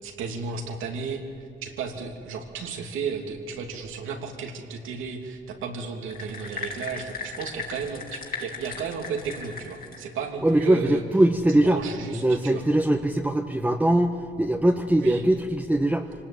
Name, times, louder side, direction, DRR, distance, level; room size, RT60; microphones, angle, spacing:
voice 1, 0.0-12.6 15.0-15.3, right 5 dB, 85° right, 3 dB, 3.0 m, -34 dB
sound 1, 6.1-10.1, left 4 dB, 45° left, 3.8 m, -37 dB
voice 2, 10.4-11.8 12.1-16.1, right 1 dB, 5° right, 2 dB, 1.3 m, -22 dB
26.0 x 19.0 x 8.9 m, 2.4 s
cardioid pair, 90°, 20 cm